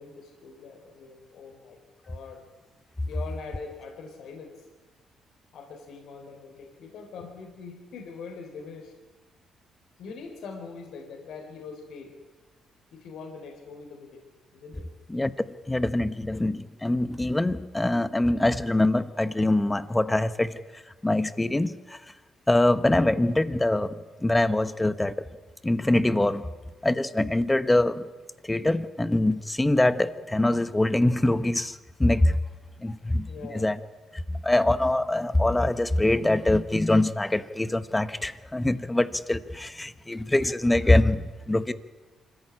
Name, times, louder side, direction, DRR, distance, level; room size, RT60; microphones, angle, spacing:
voice 1, 0.0-1.8 2.1-2.4 3.1-4.7 5.5-8.9 10.0-12.1 12.9-14.2 14.5-14.9 33.3-33.8, left 4 dB, 75° left, 4.1 m, -42 dB
voice 2, 15.7-20.6 21.0-22.0 22.5-25.1 25.6-26.5 26.8-28.0 28.4-32.4 32.8-33.8 34.3-41.7, left 1 dB, 15° left, 1.1 m, -24 dB
25.0 x 14.5 x 9.9 m
cardioid pair, 90°, 0 cm